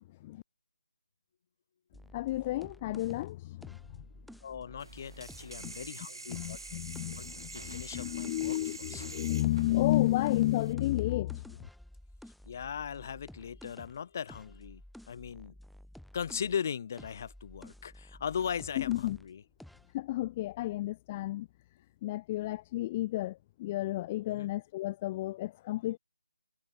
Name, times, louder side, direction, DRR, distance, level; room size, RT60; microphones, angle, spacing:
sound 1, 1.9-5.9 6.3-8.6 8.9-16.6 16.9-19.3 19.6-19.9, left 1 dB, ahead, 2.6 m, -52 dB
voice 1, 2.1-3.6 5.6-5.7 6.3-11.4 18.8-19.2 19.9-21.5 22.0-26.0, left 16 dB, 20° left, 0.6 m, -32 dB
voice 2, 4.4-6.6 7.2-7.3 7.5-9.0 12.5-14.8 15.1-15.5 16.1-19.4 24.3-24.5, left 7 dB, 35° left, 2.6 m, -38 dB
sound 2, 4.8-10.7, right 3 dB, 80° right, 6.6 m, -46 dB
figure-of-eight pair, 160°, 2 cm